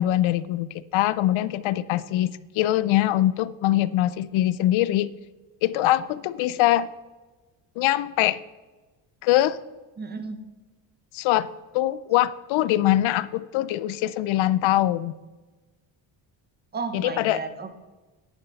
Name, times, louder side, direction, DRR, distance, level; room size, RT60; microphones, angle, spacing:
voice 1, 0.0-5.1 5.6-6.9 7.8-8.4 9.2-9.6 11.1-11.5 11.7-15.1 16.9-17.4, left 14 dB, 75° left, 17 dB, 0.6 m, -23 dB
voice 2, 10.0-10.4 16.7-17.7, right 4 dB, 20° right, 9 dB, 0.8 m, -33 dB
11.5 x 9.8 x 4.0 m, 1.2 s
cardioid pair, 180°, 47 cm